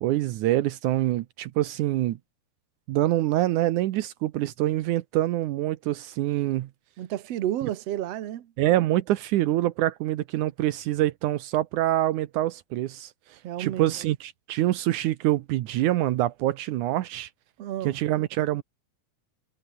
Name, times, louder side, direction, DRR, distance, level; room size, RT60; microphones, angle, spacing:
voice 1, 0.0-2.2 2.9-6.7 8.6-17.3 17.8-18.6, right 15 dB, 80° right, 2.3 m, -25 dB
voice 2, 7.0-8.5 13.4-13.9 17.6-18.0, right 12 dB, 60° right, 2.2 m, -31 dB
omnidirectional pair, 3.6 m